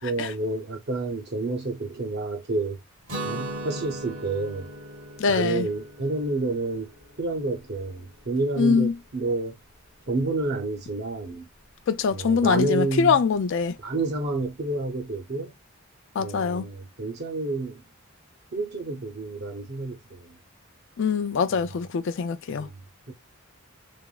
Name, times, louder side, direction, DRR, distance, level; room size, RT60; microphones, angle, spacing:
voice 1, 0.0-2.8 3.2-4.7 5.3-6.9 7.2-9.6 10.1-11.5 12.1-13.2 13.8-15.6 16.2-17.8 18.5-20.4 21.5-21.7 22.5-22.8 23.1-23.2, right 2 dB, 50° right, 0.7 m, -29 dB
Guitar, 3.1-8.9, right 1 dB, 70° right, 1.4 m, -39 dB
voice 2, 5.2-5.7 8.6-9.0 11.9-13.8 16.2-16.7 21.0-22.7, left 5 dB, 60° left, 0.4 m, -23 dB
3.3 x 2.0 x 2.3 m
head